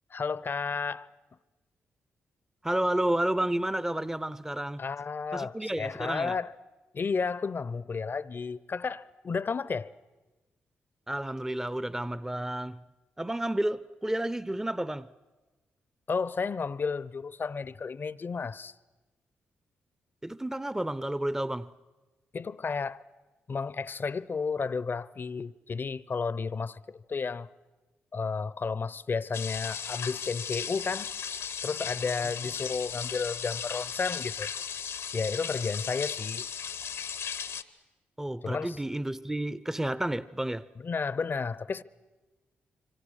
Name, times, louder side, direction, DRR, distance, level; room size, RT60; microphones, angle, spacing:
voice 1, 0.1-1.1 4.8-6.5 6.9-9.9 16.1-18.7 22.3-23.0 23.5-27.5 28.1-31.1 31.6-34.5 35.1-36.5 38.4-38.8 40.8-41.8, left 5 dB, 45° left, 0.7 m, -32 dB
voice 2, 2.6-4.8 5.3-6.4 11.1-12.8 13.2-15.1 20.2-21.7 38.2-40.7, right 1 dB, 10° right, 0.7 m, -31 dB
sound 1, 29.3-37.6, left 7 dB, 75° left, 1.1 m, -36 dB
26.5 x 25.0 x 6.5 m
supercardioid pair, 50°, 5 cm